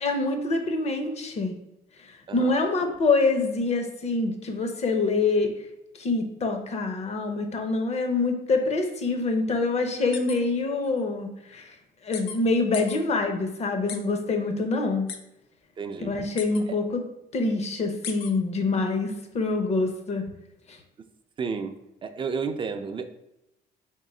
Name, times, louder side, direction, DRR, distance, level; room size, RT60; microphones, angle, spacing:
voice 1, 0.0-1.5 2.0-5.5 6.0-11.7 12.0-15.1 16.0-17.0 17.3-20.3 20.7-20.8, left 3 dB, 40° left, 6 dB, 0.8 m, -25 dB
sound 1, 10.1-10.4 10.9-11.0 12.1-12.4 12.7-13.0 13.9-14.0 15.1-15.2 16.4-16.6 18.0-18.3, left 7 dB, 75° left, 0.6 m, -35 dB
voice 2, 15.8-16.1 16.7-16.8 21.4-23.1, right 5 dB, 30° right, 8 dB, 0.4 m, -32 dB
3.7 x 3.1 x 4.2 m, 0.87 s
cardioid pair, 110°, 17 cm